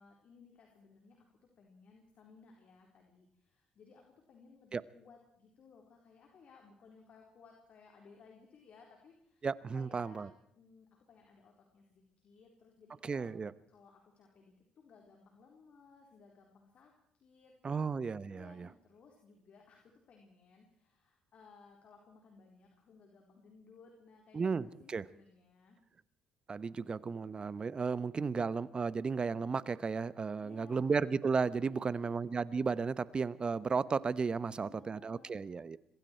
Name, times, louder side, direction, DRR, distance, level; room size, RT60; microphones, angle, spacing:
voice 1, 0.0-9.5 9.7-10.3 10.6-13.3 13.7-17.8 18.3-25.8 30.4-31.0 31.7-32.1 34.4-35.5, left 5 dB, 55° left, 1 dB, 4.2 m, -60 dB
voice 2, 9.4-10.3 13.0-13.5 17.6-18.7 24.3-25.0 26.5-35.8, right 5 dB, 35° right, 17 dB, 1.0 m, -34 dB
26.0 x 22.0 x 4.6 m, 0.69 s
supercardioid pair, 65°, 3 cm